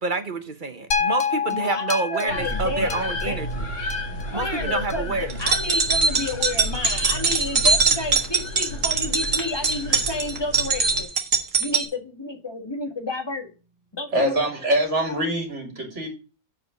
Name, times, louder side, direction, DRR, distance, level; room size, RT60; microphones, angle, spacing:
voice 1, 0.0-3.5 4.3-5.3, right 3 dB, 45° right, 0.9 m, -27 dB
sound 1, 0.9-5.2 5.9-6.0, left 6 dB, 85° left, 1.6 m, -29 dB
voice 2, 1.4-3.4 4.1-11.1 11.6-13.5 13.9-14.5, left 2 dB, 20° left, 1.7 m, -31 dB
sound 2, 2.3-11.0, left 1 dB, 65° left, 3.2 m, -32 dB
sound 3, 5.3-11.9, right 4 dB, 75° right, 2.0 m, -22 dB
voice 3, 14.1-16.1, right 1 dB, 60° right, 3.4 m, -24 dB
7.5 x 5.1 x 6.1 m
omnidirectional pair, 1.4 m